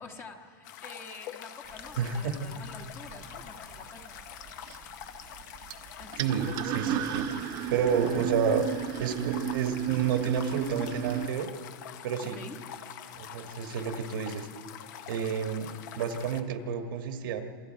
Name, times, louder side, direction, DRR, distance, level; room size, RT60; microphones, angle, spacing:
voice 1, 0.0-4.4 6.0-6.2 12.2-12.7, left 4 dB, 20° left, 4 dB, 1.3 m, -47 dB
sound 1, 0.6-16.4, left 10 dB, 55° left, 1.0 m, -45 dB
sound 2, 1.7-11.3, right 11 dB, 35° right, 0.9 m, -35 dB
voice 2, 2.0-2.5 6.2-7.3 7.7-8.6 9.0-11.5 12.0-12.4 13.1-14.5 15.1-17.4, right 7 dB, 70° right, 6 dB, 1.5 m, -30 dB
27.5 x 24.5 x 4.6 m, 2.8 s
supercardioid pair, 155°, 12 cm